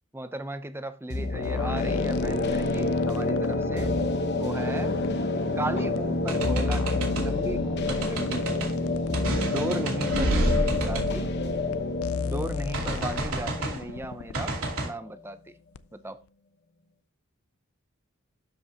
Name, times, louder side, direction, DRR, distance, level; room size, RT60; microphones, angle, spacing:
voice 1, 0.1-3.9 4.4-5.0 5.6-8.8 9.4-11.3 12.2-15.4 15.9-16.2, right 1 dB, 10° right, 0.6 m, -36 dB
sound 1, 1.1-14.8, left 2 dB, 50° left, 1.0 m, -28 dB
sound 2, 1.3-4.1 5.0-5.1 5.9-6.0 6.4-9.4 10.2-10.3 11.2-11.3 11.7-11.8 12.0-14.7 15.7-15.8, left 5 dB, 80° left, 0.4 m, -36 dB
sound 3, 6.3-7.3 7.9-8.7 9.1-12.0 12.7-13.8 14.3-14.9, right 1 dB, 75° right, 2.6 m, -29 dB
12.0 x 5.3 x 2.8 m
head